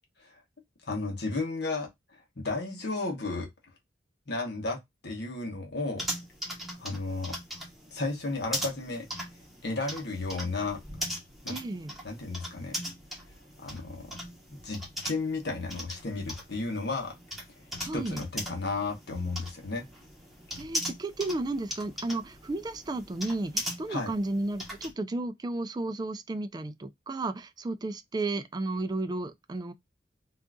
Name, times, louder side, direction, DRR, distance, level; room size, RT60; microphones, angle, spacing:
voice 1, 0.8-3.5 4.3-6.0 6.8-7.3 7.9-9.1 9.6-10.8 11.4-11.6 12.0-12.7 13.6-14.1 14.6-17.1 17.8-19.9 23.9-24.1, left 3 dB, 65° left, 1.0 m, -33 dB
sound 1, 6.0-24.9, equal, ahead, 1.0 m, -40 dB
voice 2, 11.5-11.9 17.8-18.2 20.6-29.7, right 2 dB, 25° right, 0.4 m, -33 dB
3.7 x 2.5 x 2.2 m
head